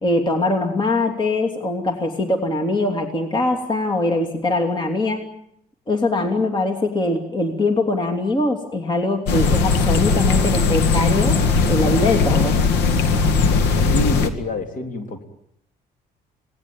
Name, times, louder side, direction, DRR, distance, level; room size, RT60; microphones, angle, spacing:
voice 1, 0.0-5.3 5.9-11.4 11.7-12.6, left 2 dB, 25° left, 4 dB, 2.9 m, -22 dB
sound 1, 9.3-14.3, left 4 dB, 85° left, 2.1 m, -18 dB
voice 2, 13.8-15.3, left 2 dB, 50° left, 6 dB, 3.6 m, -27 dB
25.5 x 19.0 x 8.8 m, 0.72 s
cardioid pair, 110°, 17 cm